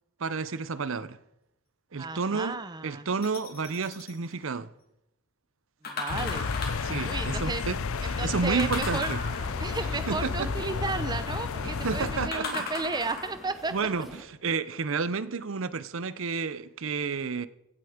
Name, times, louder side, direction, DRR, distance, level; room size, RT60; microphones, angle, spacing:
voice 1, 0.2-1.2 1.9-4.7 6.8-9.2 9.9-10.5 11.8-12.7 13.7-17.5, right 5 dB, 60° right, 0.6 m, -31 dB
voice 2, 2.0-3.0 5.9-6.5 7.1-7.6 8.2-9.1 9.6-13.7, right 3 dB, 20° right, 0.6 m, -33 dB
sound 1, 3.2-4.2 5.8-6.9 8.6-9.7 12.3-13.5 14.1-14.2, left 3 dB, 45° left, 2.6 m, -36 dB
sound 2, 6.1-12.3, left 5 dB, 70° left, 0.6 m, -31 dB
sound 3, 9.2-14.2, equal, ahead, 1.8 m, -46 dB
16.5 x 8.0 x 5.0 m
head